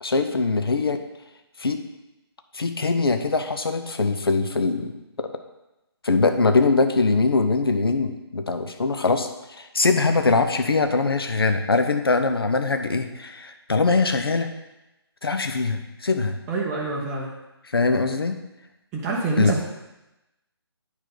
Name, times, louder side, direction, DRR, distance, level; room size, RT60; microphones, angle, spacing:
voice 1, 0.0-1.0 1.6-1.8 2.5-4.9 6.0-9.3 9.6-14.5 15.2-16.4 17.7-18.4 19.4-19.5, left 3 dB, 60° left, 7 dB, 0.8 m, -22 dB
voice 2, 16.5-17.3 18.9-19.6, right 4 dB, 10° right, -4 dB, 0.7 m, -26 dB
8.9 x 5.2 x 4.0 m, 0.98 s
figure-of-eight pair, 145°, 14 cm